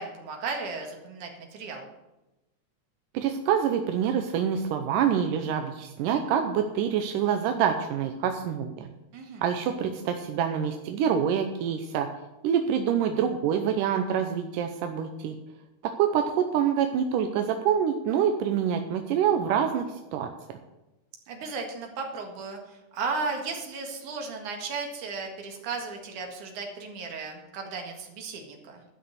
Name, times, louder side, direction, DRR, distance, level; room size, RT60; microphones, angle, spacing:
voice 1, 0.0-1.8 9.1-9.4 21.3-28.8, right 4 dB, 70° right, 2 dB, 3.2 m, -35 dB
voice 2, 3.1-8.9 9.4-12.1 12.4-15.4 15.8-20.3, right 8 dB, 90° right, 5 dB, 2.4 m, -26 dB
12.5 x 6.2 x 8.0 m, 1.0 s
omnidirectional pair, 3.7 m